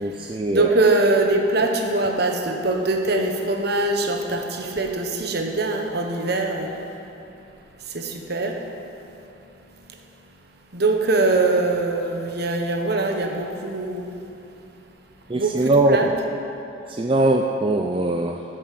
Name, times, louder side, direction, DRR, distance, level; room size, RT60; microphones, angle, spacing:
voice 1, 0.0-0.8 15.3-16.1 16.9-18.4, right 2 dB, 25° right, 2 dB, 0.4 m, -21 dB
voice 2, 0.5-6.8 7.9-8.6 10.7-14.1 15.3-16.1, right 2 dB, 55° right, 3 dB, 1.2 m, -22 dB
13.5 x 7.2 x 6.6 m, 2.9 s
head